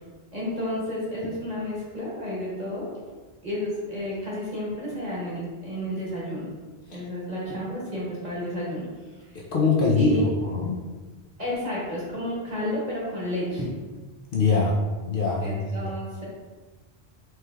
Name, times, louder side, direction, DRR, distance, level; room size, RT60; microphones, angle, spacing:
voice 1, 0.3-2.9 3.4-6.5 6.9-8.8 10.0-10.3 11.4-13.7 15.4-16.2, left 1 dB, 40° right, -6 dB, 1.3 m, -31 dB
voice 2, 9.5-10.8 14.3-14.8 15.1-15.6, left 3 dB, 60° left, -3 dB, 0.7 m, -22 dB
4.6 x 3.1 x 2.3 m, 1.3 s
omnidirectional pair, 1.1 m